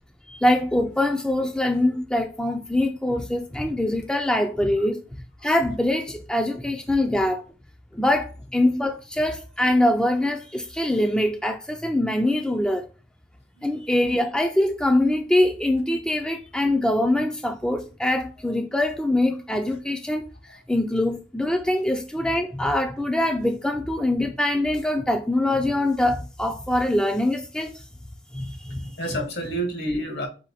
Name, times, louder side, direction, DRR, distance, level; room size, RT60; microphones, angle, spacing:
voice 1, 0.3-5.0 5.4-7.5 7.9-12.9 13.6-27.8 28.3-28.9, left 1 dB, 5° left, 0.3 m, -23 dB
voice 2, 28.8-30.3, right 1 dB, 65° left, 1.3 m, -29 dB
4.9 x 2.2 x 4.1 m
head